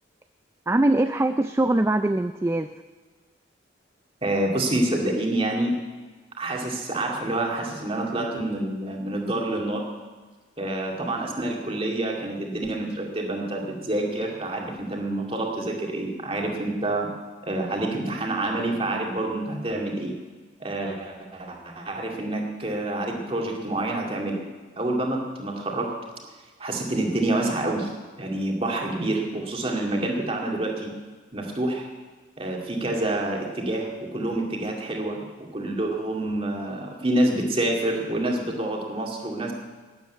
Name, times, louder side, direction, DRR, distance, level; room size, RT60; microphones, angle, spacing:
voice 1, 0.7-2.7, right 1 dB, 15° right, 9 dB, 0.3 m, -22 dB
voice 2, 4.2-5.8 6.4-9.8 10.6-17.1 17.4-20.1 20.6-24.4 24.8-25.9 26.6-30.9 31.3-31.9 32.4-39.5, right 1 dB, 30° right, 0 dB, 2.3 m, -27 dB
12.5 x 10.5 x 8.2 m, 1.4 s
head